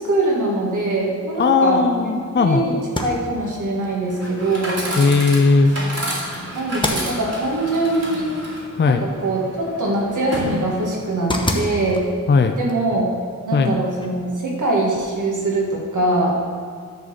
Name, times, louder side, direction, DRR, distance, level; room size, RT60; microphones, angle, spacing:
voice 1, 0.0-4.9 6.5-8.3 8.8-12.0 12.5-13.1 13.5-16.4, right 2 dB, 90° right, -3 dB, 1.9 m, -22 dB
voice 2, 1.4-2.6 5.0-5.7 8.8-9.0 12.3-12.6 13.5-13.8, left 4 dB, 35° left, 6 dB, 0.5 m, -17 dB
sound 1, 2.8-14.4, left 1 dB, 15° left, 0.9 m, -33 dB
Chatter / Coin (dropping), 4.1-11.1, equal, 55° right, 2.3 m, -31 dB
10.5 x 4.1 x 6.5 m, 2.1 s
wide cardioid pair, 85°, 30 cm